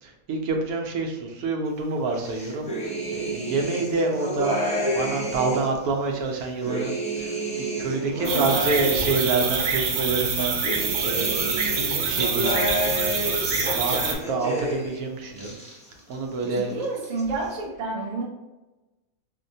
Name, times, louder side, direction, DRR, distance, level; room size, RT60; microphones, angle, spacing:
voice 1, 0.0-12.9 13.5-14.0 14.3-15.5 16.1-16.8, right 3 dB, 90° right, 2 dB, 1.1 m, -28 dB
sound 1, 2.2-5.8 6.3-9.7 10.2-15.0 15.3-16.1 16.4-17.2, equal, 10° left, 0.3 m, -30 dB
voice 2, 8.2-8.5 16.5-18.2, right 3 dB, 40° right, -3 dB, 0.7 m, -29 dB
sound 2, 8.3-14.2, right 5 dB, 70° right, 0.9 m, -26 dB
4.5 x 2.1 x 2.6 m, 1.1 s
omnidirectional pair, 1.5 m